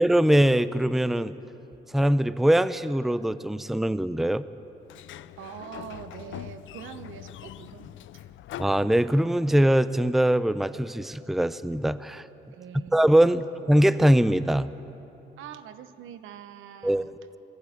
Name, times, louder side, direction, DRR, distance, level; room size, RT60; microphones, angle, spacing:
voice 1, 0.0-1.3 1.9-4.4 8.6-12.2 12.9-14.7 16.8-17.1, right 1 dB, ahead, 15 dB, 0.6 m, -22 dB
Sliding door, 4.8-9.6, left 13 dB, 75° left, 0.6 m, -43 dB
voice 2, 5.4-8.3 12.5-13.0 15.4-17.1, right 9 dB, 85° right, 11 dB, 1.0 m, -43 dB
20.5 x 14.5 x 9.9 m, 3.0 s
cardioid pair, 90°, 20 cm